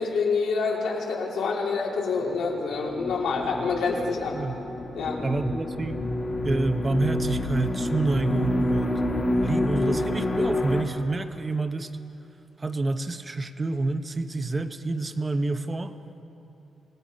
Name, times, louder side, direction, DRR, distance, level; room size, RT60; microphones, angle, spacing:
voice 1, 0.0-4.4 4.9-5.3, left 4 dB, 80° left, -2 dB, 3.4 m, -27 dB
sound 1, 2.3-10.8, left 1 dB, 25° left, 1.5 m, -28 dB
voice 2, 5.2-6.1 6.4-9.0 9.4-11.9 12.6-15.9, right 2 dB, 20° right, 9 dB, 0.7 m, -28 dB
25.5 x 20.0 x 5.2 m, 3.0 s
wide cardioid pair, 165°, 0 cm